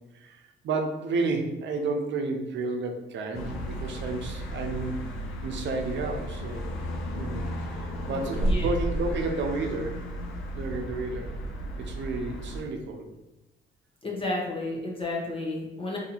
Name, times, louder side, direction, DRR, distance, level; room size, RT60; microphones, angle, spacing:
voice 1, 0.1-5.0 5.4-6.6 7.1-10.0 10.5-11.3 11.8-13.1, right 3 dB, 65° right, 4 dB, 0.6 m, -31 dB
sound 1, 3.3-12.6, equal, 80° left, 0.6 m, -33 dB
voice 2, 8.1-8.7 14.0-16.0, left 2 dB, 25° left, -2 dB, 0.8 m, -32 dB
2.7 x 2.7 x 3.9 m, 1.0 s
cardioid pair, 90°, 20 cm